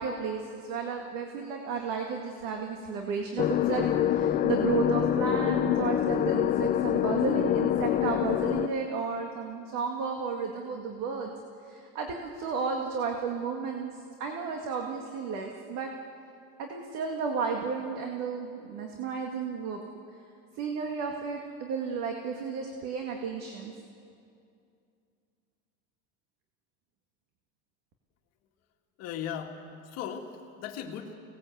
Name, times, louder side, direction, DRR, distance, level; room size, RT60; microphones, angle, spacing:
voice 1, 0.0-11.3 11.6-15.9 16.6-19.8 20.6-23.7, right 5 dB, 55° right, 2 dB, 2.1 m, -33 dB
sound 1, 3.4-8.7, left 11 dB, 25° left, 0.5 m, -26 dB
voice 2, 29.0-31.1, left 8 dB, 50° left, 2 dB, 1.9 m, -38 dB
25.5 x 18.5 x 8.0 m, 2.5 s
cardioid pair, 160°, 33 cm